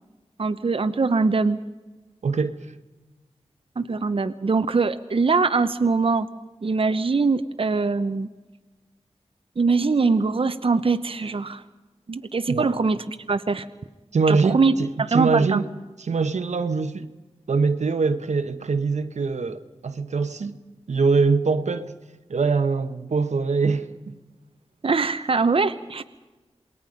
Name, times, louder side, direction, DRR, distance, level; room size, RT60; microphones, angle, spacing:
voice 1, 0.4-1.6 3.8-6.3 6.6-8.3 9.6-11.6 12.1-13.6 14.3-14.7 15.0-15.6 24.8-26.0, right 4 dB, 50° right, 0.9 m, -22 dB
voice 2, 2.2-2.6 12.5-12.7 14.1-15.7 16.0-17.1 17.5-20.6 20.9-21.9 22.3-24.2, right 4 dB, 90° right, 1.2 m, -23 dB
27.5 x 20.5 x 5.2 m
wide cardioid pair, 65°, 12 cm